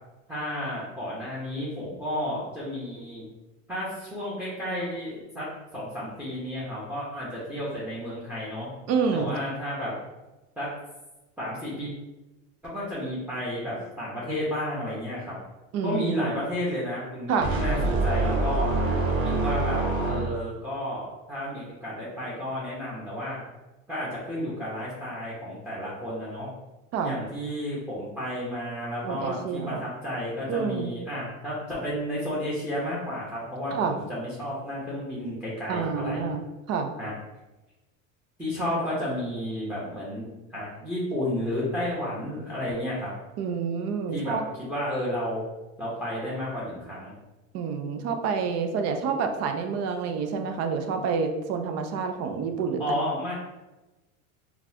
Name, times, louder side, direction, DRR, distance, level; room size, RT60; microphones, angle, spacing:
voice 1, 0.3-3.3 3.7-5.4 5.7-8.7 9.1-9.9 10.6-10.7 11.4-11.9 12.6-15.3 15.8-18.7 19.2-23.4 23.9-26.5 27.0-36.2 37.0-37.1 38.4-43.1 44.1-45.4 45.8-47.1 52.8-53.3, left 1 dB, 5° right, -7 dB, 0.9 m, -32 dB
voice 2, 8.9-9.3 15.7-16.4 17.3-17.5 26.9-27.2 29.0-29.8 30.5-30.9 33.7-34.0 35.7-36.4 36.7-36.9 43.4-44.5 47.5-53.0, right 5 dB, 40° right, 6 dB, 0.5 m, -28 dB
sound 1, 17.4-20.6, right 2 dB, 80° right, 1.1 m, -25 dB
3.8 x 2.3 x 2.8 m, 1.1 s
supercardioid pair, 105°, 41 cm